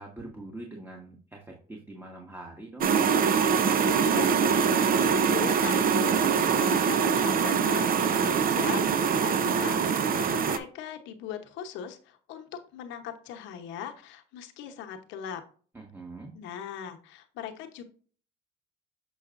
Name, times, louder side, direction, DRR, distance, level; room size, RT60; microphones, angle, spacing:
voice 1, 0.0-2.9 15.7-16.3, right 2 dB, 10° right, 1 dB, 1.3 m, -43 dB
sound 1, 2.8-10.6, right 6 dB, 50° right, 0.7 m, -24 dB
voice 2, 4.1-15.4 16.3-17.8, left 9 dB, 90° left, 6 dB, 0.9 m, -40 dB
6.9 x 5.6 x 2.5 m, 0.43 s
cardioid pair, 90°, 19 cm